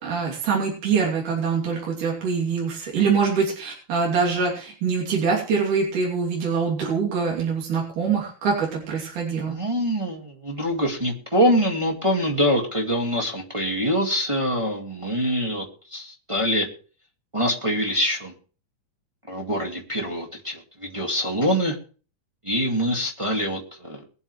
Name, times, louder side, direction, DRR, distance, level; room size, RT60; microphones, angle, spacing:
voice 1, 0.0-9.6, right 5 dB, 65° right, -3 dB, 4.5 m, -24 dB
voice 2, 9.5-15.6 15.9-16.7 17.3-18.3 19.3-21.8 22.4-24.0, equal, 15° right, 0 dB, 1.2 m, -24 dB
23.0 x 8.1 x 3.2 m, 0.39 s
omnidirectional pair, 3.9 m